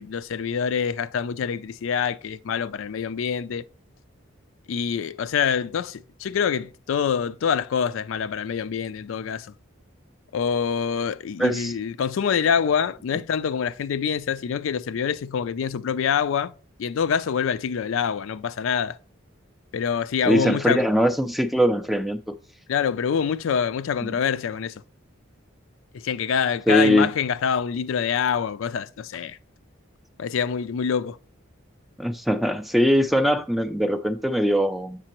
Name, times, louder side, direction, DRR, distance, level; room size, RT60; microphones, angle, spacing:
voice 1, 0.0-3.6 4.7-9.5 10.3-16.5 16.8-19.0 19.7-20.9 22.7-24.8 25.9-29.4 30.2-31.2, left 7 dB, 80° left, 0.4 m, -25 dB
voice 2, 11.4-11.7 20.3-22.4 26.7-27.1 32.0-35.1, equal, ahead, 0.3 m, -21 dB
7.6 x 6.6 x 2.9 m
head